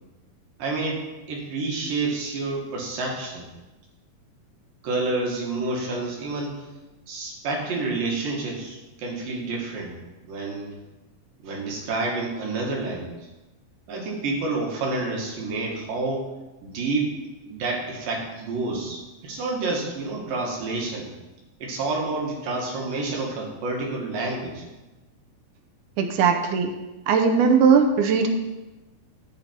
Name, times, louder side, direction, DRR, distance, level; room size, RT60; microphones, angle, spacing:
voice 1, 0.6-3.4 4.8-6.7 7.1-9.9 10.3-10.7 11.4-13.2 13.9-16.3 16.6-17.2 17.5-21.1 21.6-24.7, right 3 dB, 90° right, -1 dB, 3.4 m, -29 dB
voice 2, 26.0-26.7 27.1-28.3, right 6 dB, 75° right, 5 dB, 2.2 m, -19 dB
9.8 x 7.5 x 4.4 m, 1.1 s
omnidirectional pair, 3.8 m